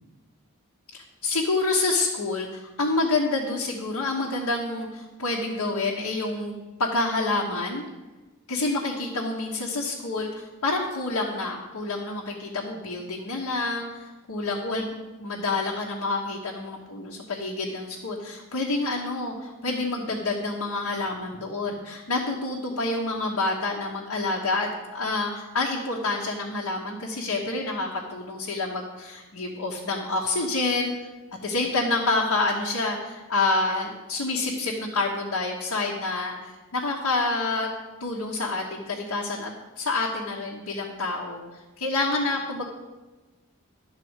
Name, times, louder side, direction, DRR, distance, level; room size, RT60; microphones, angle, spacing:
voice 1, 1.2-7.8 8.5-14.9 15.2-30.9 31.4-37.7 38.0-41.4 41.8-42.6, left 3 dB, 90° left, -2 dB, 1.2 m, -28 dB
12.0 x 4.1 x 8.0 m, 1.2 s
head